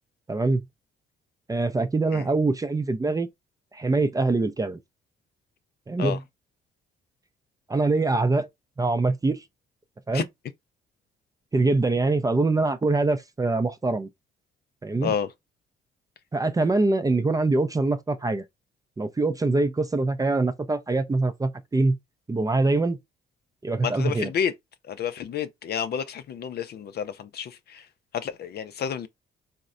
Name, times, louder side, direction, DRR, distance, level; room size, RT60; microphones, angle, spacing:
voice 1, 0.3-0.6 1.5-3.3 3.7-4.8 5.9-6.2 7.7-8.5 8.8-9.4 10.1-10.3 11.5-14.1 14.8-15.1 16.3-18.4 19.0-22.0 22.3-23.0 23.6-24.3, right 3 dB, 15° right, 0.4 m, -24 dB
voice 2, 23.8-24.5 24.9-27.8 28.1-29.1, left 8 dB, 55° left, 0.4 m, -30 dB
3.8 x 2.1 x 2.5 m
cardioid pair, 90°, 20 cm